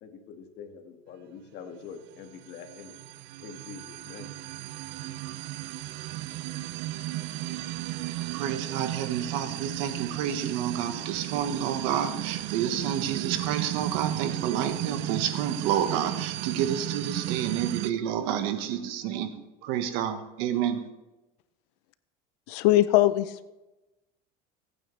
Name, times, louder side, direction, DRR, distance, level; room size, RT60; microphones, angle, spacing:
voice 1, 0.0-3.0 3.4-4.4, left 6 dB, 60° left, 5 dB, 1.9 m, -45 dB
sound 1, 2.2-17.9, right 16 dB, 65° right, 0.6 m, -34 dB
voice 2, 8.3-19.3 19.6-20.8, right 9 dB, 80° right, 8 dB, 1.4 m, -29 dB
voice 3, 22.5-23.5, left 14 dB, 85° left, 14 dB, 0.7 m, -21 dB
22.5 x 9.1 x 3.3 m, 1.0 s
cardioid pair, 130°, 19 cm